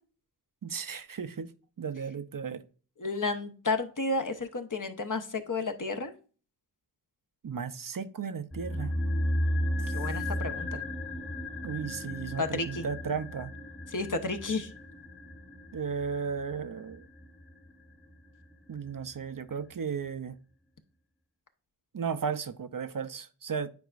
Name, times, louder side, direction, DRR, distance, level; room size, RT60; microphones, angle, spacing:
voice 1, 0.6-1.5 1.8-2.6 7.4-8.9 11.6-13.5 15.7-17.1 18.7-20.4 21.9-23.7, right 6 dB, 50° right, 0.7 m, -35 dB
voice 2, 3.0-6.1 9.9-10.8 12.4-12.9 13.9-14.7, left 3 dB, 50° left, 1.1 m, -32 dB
sound 1, 8.5-18.8 19.0-19.1, left 1 dB, ahead, 1.1 m, -34 dB
9.3 x 4.5 x 2.5 m
cardioid pair, 40°, 41 cm